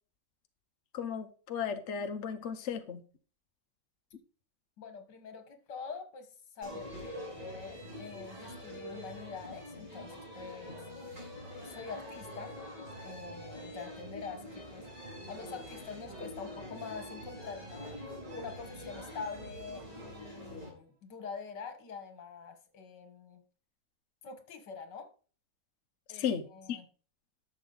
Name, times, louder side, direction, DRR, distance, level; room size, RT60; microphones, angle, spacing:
voice 1, 0.9-3.0 26.1-26.8, left 7 dB, 50° left, 1.0 m, -35 dB
voice 2, 4.8-6.3 6.6-10.8 11.5-12.6 13.0-18.0 18.3-23.4 24.2-25.1 26.1-26.9, left 5 dB, 75° left, 2.0 m, -45 dB
sound 1, 6.6-20.7, equal, 20° right, 4.8 m, -45 dB
11.5 x 6.4 x 4.0 m
omnidirectional pair, 1.9 m